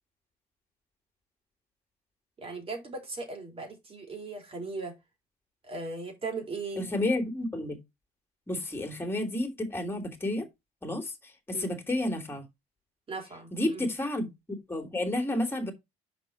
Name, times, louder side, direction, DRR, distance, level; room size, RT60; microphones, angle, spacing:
voice 1, 2.4-4.9 5.6-6.9 11.5-11.7 13.1-13.9, right 3 dB, 35° right, 3.7 m, -38 dB
voice 2, 6.8-7.8 8.5-10.5 10.8-11.1 11.5-12.4 13.5-14.3 14.7-15.7, left 1 dB, 15° left, 3.0 m, -30 dB
6.1 x 5.2 x 5.8 m
cardioid pair, 110°, 17 cm